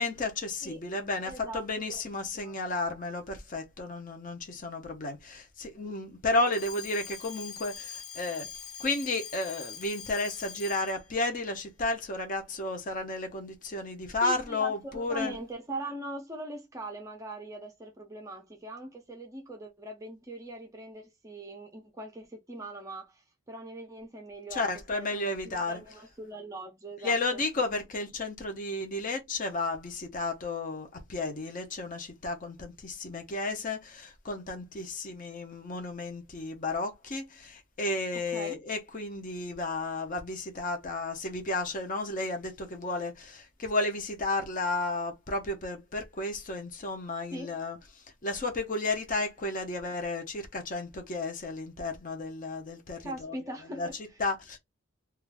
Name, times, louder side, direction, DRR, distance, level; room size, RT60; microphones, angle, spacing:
voice 1, 0.0-8.5 8.8-15.4 24.5-25.8 27.0-53.4 53.7-53.9 54.2-54.6, left 2 dB, 40° left, 0.7 m, -33 dB
voice 2, 1.2-2.0 2.4-2.5 14.2-24.6 24.9-27.4 38.3-38.6 47.3-47.6 53.0-54.2, right 1 dB, 15° right, 0.5 m, -41 dB
Alarm, 6.5-11.1, left 8 dB, 80° left, 0.9 m, -43 dB
2.5 x 2.3 x 3.2 m
head